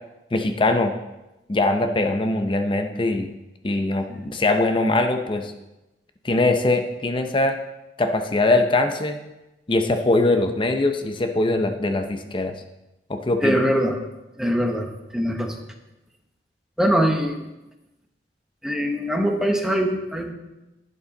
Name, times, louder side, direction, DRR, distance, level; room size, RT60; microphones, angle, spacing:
voice 1, 0.3-0.9 1.5-3.3 3.6-5.5 6.2-7.6 8.0-9.2 9.7-12.5 13.1-13.6, left 2 dB, 30° left, 7 dB, 0.6 m, -22 dB
voice 2, 13.4-14.0 14.4-15.6 16.8-17.5 18.6-20.3, equal, 5° right, 3 dB, 1.0 m, -23 dB
11.0 x 8.5 x 3.9 m, 0.98 s
head